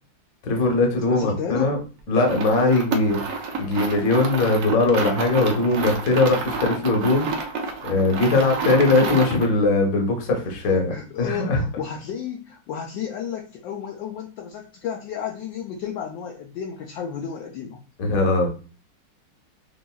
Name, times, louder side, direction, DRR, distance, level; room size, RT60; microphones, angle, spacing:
voice 1, 0.4-1.8 2.1-11.6 18.0-18.5, left 2 dB, 50° left, 2 dB, 1.3 m, -21 dB
voice 2, 1.1-1.7 8.3-9.2 10.6-17.8, left 8 dB, 70° left, 0 dB, 1.3 m, -32 dB
sound 1, 2.2-9.5, right 4 dB, 90° right, 0.7 m, -29 dB
6.9 x 2.6 x 2.3 m, 0.36 s
omnidirectional pair, 2.2 m